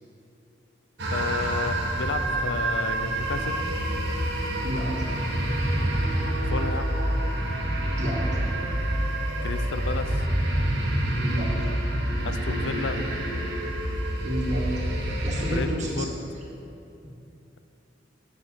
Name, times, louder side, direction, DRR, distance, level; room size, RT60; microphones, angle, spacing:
sound 1, 1.0-15.6, right 1 dB, 65° right, 1.1 m, -27 dB
voice 1, 1.1-3.6 6.4-7.0 9.4-10.2 12.2-13.1 15.5-16.1, left 4 dB, 85° left, 10 dB, 0.5 m, -32 dB
voice 2, 4.6-5.1 8.0-8.4 11.2-11.7 14.2-14.8 15.2-16.3 17.0-17.1, right 1 dB, 40° right, -2 dB, 1.4 m, -31 dB
7.1 x 6.0 x 6.3 m, 2.8 s
head